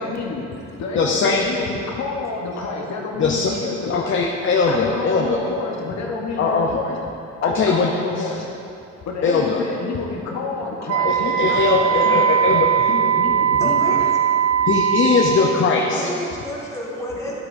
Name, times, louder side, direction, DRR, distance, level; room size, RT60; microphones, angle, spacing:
voice 1, 0.0-4.3 4.7-7.0 7.4-8.5 9.0-12.6 12.9-14.0, left 3 dB, 65° left, -1 dB, 1.0 m, -29 dB
voice 2, 1.0-1.4 3.2-3.5 3.9-5.4 6.4-6.7 7.4-7.9 8.2-8.3 9.2-9.6 11.0-12.9 14.6-16.0, left 4 dB, 40° left, 0 dB, 0.6 m, -20 dB
Wind instrument woodwind instrument, 10.9-15.7, right 9 dB, 55° right, 0.6 m, -19 dB
voice 3, 13.6-14.1 15.8-17.4, left 1 dB, 10° left, -6 dB, 1.9 m, -30 dB
10.5 x 7.7 x 2.6 m, 2.8 s
cardioid pair, 90°, 30 cm